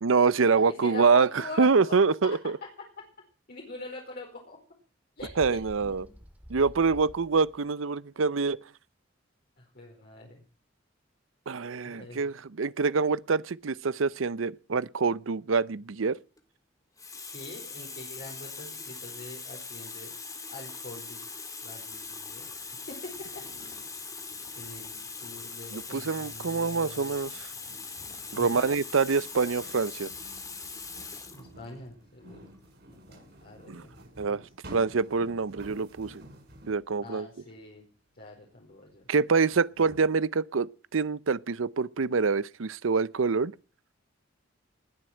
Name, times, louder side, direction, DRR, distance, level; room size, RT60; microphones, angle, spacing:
voice 1, 0.0-2.6 5.4-6.1 6.5-8.6 11.5-16.2 25.7-27.5 28.3-30.1 33.7-33.8 34.2-34.4 34.7-36.2 36.7-37.3 39.1-43.5, right 4 dB, 85° right, 0.6 m, -26 dB
voice 2, 0.5-2.0 3.5-4.6 5.2-6.2 9.6-10.4 11.8-12.2 17.3-20.1 20.5-21.3 21.6-22.5 22.9-23.8 24.6-27.2 28.3-28.7 31.3-32.5 32.9-33.9 34.3-34.4 37.0-37.8 38.2-39.0, left 2 dB, 55° left, 4.7 m, -44 dB
Bird, 5.2-7.6, equal, 10° right, 2.3 m, -48 dB
Water tap faucet, 16.2-16.4 17.0-31.5 32.4-32.5, left 4 dB, 20° left, 2.1 m, -41 dB
sound 1, 21.8-37.0 38.7-38.8 39.5-40.1, equal, 55° right, 6.8 m, -53 dB
20.0 x 7.9 x 7.5 m
head